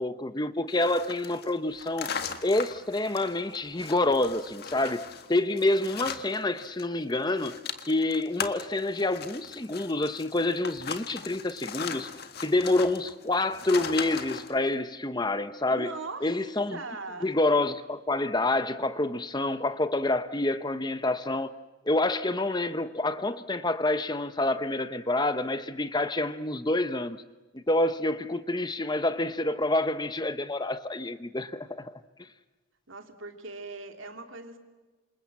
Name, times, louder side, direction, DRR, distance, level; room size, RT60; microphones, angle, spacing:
voice 1, 0.0-2.1 2.4-12.1 12.4-15.9 16.2-16.8 17.2-21.5 21.9-27.2 27.5-31.9, left 2 dB, 20° left, 0.8 m, -27 dB
sound 1, 0.7-6.8 7.1-14.5, left 6 dB, 50° left, 1.7 m, -39 dB
voice 2, 15.7-16.3 16.7-17.3 32.9-34.6, right 3 dB, 70° right, 3.0 m, -40 dB
28.0 x 27.5 x 7.5 m
head